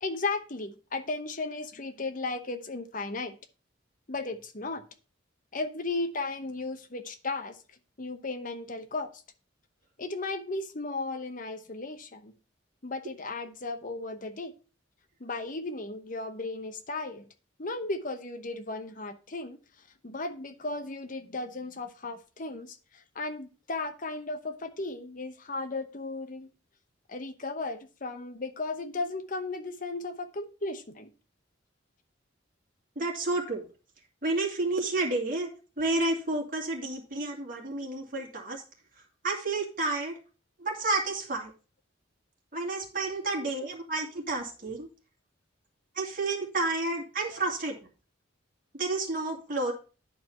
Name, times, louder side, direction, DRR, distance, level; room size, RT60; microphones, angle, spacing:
voice 1, 0.0-3.4 4.1-4.8 5.5-7.6 8.0-9.1 10.0-12.3 12.8-14.5 15.2-17.3 17.6-19.6 20.0-26.5 27.1-31.1 43.4-43.5 47.3-47.4, left 3 dB, 40° left, 9 dB, 0.9 m, -35 dB
voice 2, 33.0-33.6 34.2-35.5 35.8-38.6 39.2-40.2 40.6-41.5 42.5-44.9 46.0-47.8 48.8-49.7, right 2 dB, 45° right, 0 dB, 2.6 m, -30 dB
10.0 x 4.6 x 5.4 m, 0.35 s
head